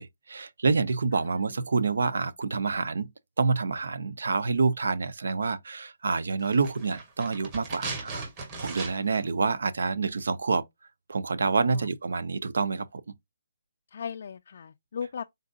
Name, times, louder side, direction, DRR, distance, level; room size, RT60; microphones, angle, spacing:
voice 1, 0.0-3.1 3.4-8.3 8.6-10.6 11.1-13.0, right 4 dB, 75° right, 0.7 m, -27 dB
voice 2, 1.1-1.5 11.6-11.9 13.9-15.2, left 7 dB, 55° left, 0.3 m, -38 dB
sound 1, 6.4-9.3 9.5-9.6, right 3 dB, 25° right, 1.7 m, -38 dB
4.0 x 3.8 x 2.3 m
hypercardioid pair, 160°, 0 cm